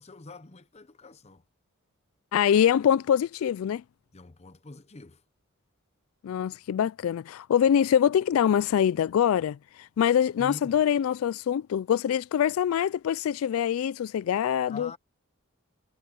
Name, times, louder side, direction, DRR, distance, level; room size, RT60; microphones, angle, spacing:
voice 1, 0.0-1.4 4.1-5.2 10.4-10.8 14.7-15.0, left 3 dB, 30° left, 0.8 m, -44 dB
voice 2, 2.3-3.8 6.2-14.9, left 9 dB, 80° left, 0.3 m, -24 dB
head